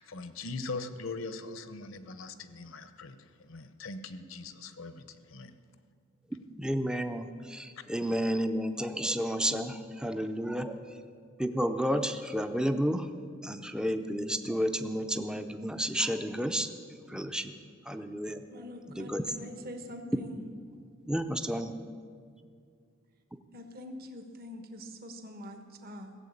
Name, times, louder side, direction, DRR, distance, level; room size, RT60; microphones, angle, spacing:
voice 1, 0.0-5.5 7.8-7.9, left 3 dB, 70° left, 11 dB, 0.9 m, -41 dB
voice 2, 6.6-10.8 11.4-13.1 13.4-16.7 17.1-17.5 17.9-18.4 19.0-19.2 21.1-21.8, equal, 5° right, 8 dB, 0.5 m, -31 dB
voice 3, 18.5-20.4 23.5-26.1, left 1 dB, 50° right, 5 dB, 1.3 m, -44 dB
16.5 x 7.3 x 8.4 m, 2.1 s
head